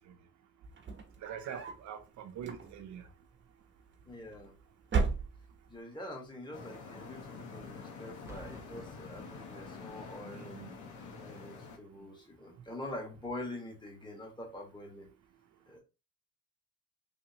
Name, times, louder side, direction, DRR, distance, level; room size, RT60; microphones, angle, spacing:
sound 1, 0.7-1.9 2.4-3.0 4.0-4.5 4.8-5.8, right 5 dB, 40° right, 1.0 m, -34 dB
voice 1, 1.2-3.1 10.3-10.7, right 9 dB, 70° right, 0.6 m, -44 dB
voice 2, 4.1-4.5 5.7-10.6 11.2-15.1 15.7-15.8, left 1 dB, 15° left, 1.4 m, -45 dB
sound 2, 6.5-11.8, left 4 dB, 70° left, 1.0 m, -47 dB
Boom, 8.3-10.0 10.9-11.1, right 2 dB, 10° right, 0.8 m, -54 dB
3.5 x 2.8 x 2.8 m
cardioid pair, 90°, 30 cm